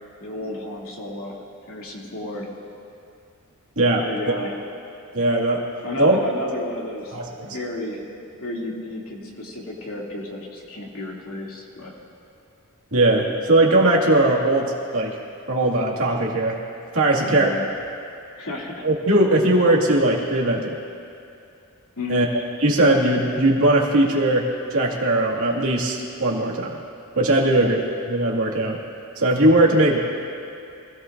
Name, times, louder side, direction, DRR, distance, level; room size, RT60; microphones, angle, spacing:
voice 1, 0.2-2.5 4.0-4.6 5.8-8.0 8.4-11.9 17.2-17.7 18.4-18.8 22.0-22.3 27.5-27.7, left 2 dB, 70° left, -3 dB, 2.8 m, -32 dB
voice 2, 5.1-5.6 6.0-6.2 7.1-7.3 12.9-15.2 15.5-16.6 16.9-17.5 18.8-20.8 22.1-22.3 22.6-26.8 27.2-27.8 28.1-28.8 29.2-30.0, right 1 dB, 70° right, -2 dB, 2.3 m, -19 dB
25.5 x 17.0 x 2.7 m, 2.6 s
head